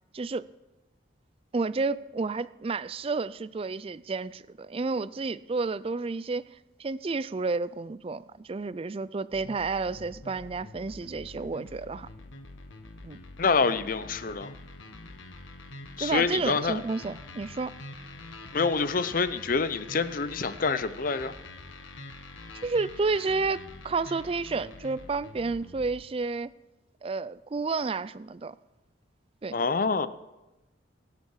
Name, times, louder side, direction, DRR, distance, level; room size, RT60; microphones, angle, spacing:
voice 1, 0.1-0.4 1.5-12.1 13.0-13.2 16.0-17.7 22.6-26.5 27.0-28.6 29.4-29.6, right 4 dB, 30° right, 17 dB, 0.3 m, -31 dB
sound 1, 9.3-26.1, left 2 dB, 80° left, 1.3 m, -45 dB
voice 2, 13.4-14.5 16.0-16.8 18.5-21.3 29.5-30.1, left 4 dB, 45° left, 14 dB, 0.6 m, -26 dB
23.5 x 8.4 x 4.7 m, 1.0 s
head